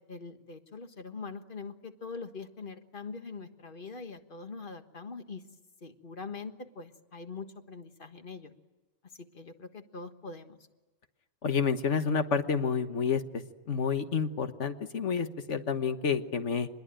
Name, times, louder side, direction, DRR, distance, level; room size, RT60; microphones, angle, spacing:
voice 1, 0.0-5.4 5.8-8.5 9.2-10.6, left 4 dB, 50° left, 7 dB, 1.6 m, -43 dB
voice 2, 11.4-13.2 13.7-16.7, left 6 dB, 85° left, 8 dB, 1.6 m, -29 dB
25.0 x 21.5 x 9.0 m, 1.2 s
omnidirectional pair, 1.2 m